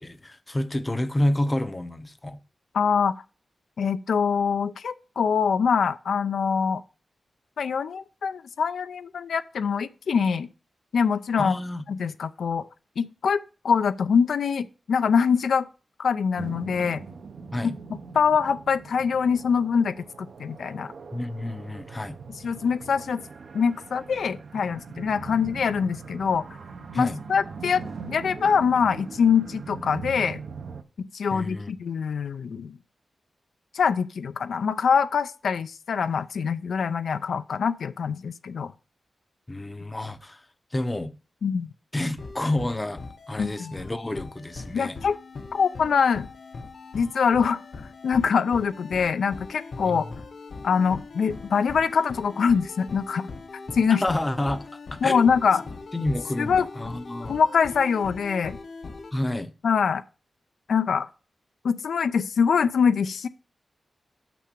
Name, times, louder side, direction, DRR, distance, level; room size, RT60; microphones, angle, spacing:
voice 1, 0.0-2.4 11.4-11.8 17.5-17.7 21.1-22.2 26.9-27.2 31.3-31.7 39.5-40.4 40.7-41.1 41.9-45.0 49.8-50.0 53.9-55.3 55.9-57.4 59.1-59.5, left 1 dB, 15° left, 0.6 m, -29 dB
voice 2, 2.7-3.2 3.8-6.8 7.6-10.5 10.9-11.6 11.9-12.6 13.0-15.7 16.0-17.1 17.6-20.9 22.4-23.2 23.5-26.5 26.9-27.8 28.1-30.4 31.1-32.8 33.7-38.7 41.4-41.7 43.4-43.7 44.7-45.2 45.5-46.3 46.9-47.6 48.0-50.1 50.6-53.3 53.7-54.0 55.0-55.6 56.4-56.7 57.3-58.6 59.6-60.0 60.7-61.1 61.6-63.3, left 6 dB, 90° left, 0.4 m, -24 dB
sound 1, 16.4-30.8, right 5 dB, 65° right, 0.7 m, -41 dB
sound 2, 42.2-59.1, left 3 dB, 60° left, 1.0 m, -41 dB
6.1 x 5.8 x 6.7 m
wide cardioid pair, 150°, 0 cm